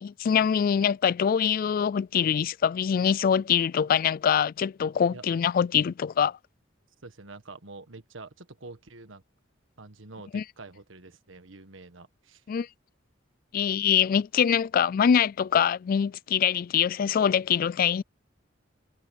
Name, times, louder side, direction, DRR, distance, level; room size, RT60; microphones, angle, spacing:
voice 1, 0.0-6.4 10.3-10.4 12.5-12.7 13.5-18.0, left 8 dB, 45° left, 0.3 m, -24 dB
voice 2, 7.0-9.2 9.8-12.4, right 3 dB, 90° right, 1.5 m, -46 dB
head